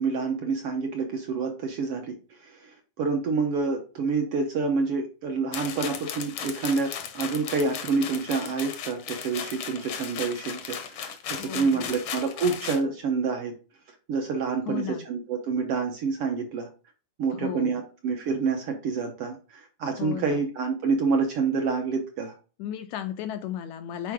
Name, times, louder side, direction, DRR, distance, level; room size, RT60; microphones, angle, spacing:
voice 1, 0.0-2.2 2.4-13.5 14.1-16.7 17.2-22.3, right 4 dB, 65° right, 3 dB, 1.5 m, -28 dB
sound 1, 5.5-12.8, left 8 dB, 65° left, 1.4 m, -36 dB
voice 2, 11.4-12.0 14.7-15.1 17.3-17.8 20.0-20.4 22.6-24.1, left 10 dB, 80° left, 9 dB, 1.7 m, -35 dB
9.2 x 4.5 x 3.6 m, 0.35 s
omnidirectional pair, 3.7 m